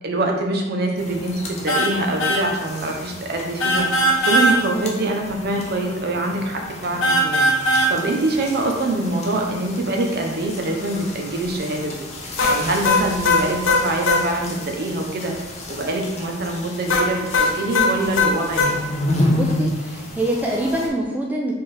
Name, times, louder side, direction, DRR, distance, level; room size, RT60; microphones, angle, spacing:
voice 1, 0.0-3.9 4.2-7.5 7.9-11.9 12.4-15.3 15.7-18.8, right 2 dB, 55° right, 2 dB, 0.7 m, -24 dB
sound 1, 1.0-20.9, left 1 dB, 35° left, 0.7 m, -31 dB
sound 2, 1.7-1.9 2.2-2.4 3.6-4.6 7.0-7.9 12.4-14.2 16.9-18.7, left 1 dB, 90° left, 0.8 m, -18 dB
voice 2, 19.3-21.5, right 1 dB, 10° right, -1 dB, 0.4 m, -25 dB
4.4 x 3.6 x 3.3 m, 1.2 s
head